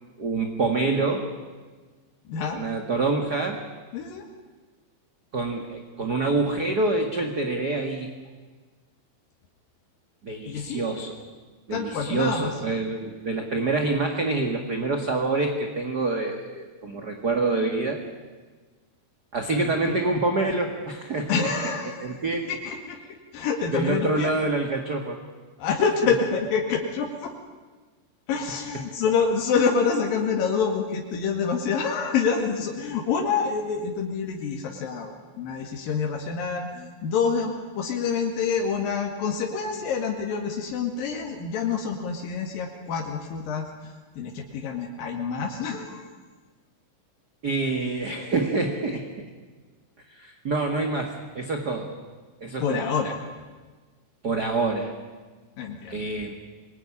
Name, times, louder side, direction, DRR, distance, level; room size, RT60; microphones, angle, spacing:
voice 1, 0.2-1.3 2.6-3.6 5.3-8.1 10.2-11.2 11.7-18.0 19.3-21.5 22.0-22.5 23.7-25.2 26.0-26.1 47.4-49.2 50.1-51.9 52.4-52.9 54.2-54.9 55.9-56.3, right 3 dB, 35° right, 3 dB, 2.0 m, -26 dB
voice 2, 2.3-2.6 3.9-4.2 10.5-10.8 11.7-12.5 21.3-22.1 22.5-23.0 23.3-24.3 25.6-27.3 28.3-46.1 52.6-53.2 55.6-56.0, left 5 dB, 85° left, 1 dB, 3.8 m, -27 dB
25.5 x 21.5 x 9.9 m, 1.4 s
omnidirectional pair, 4.0 m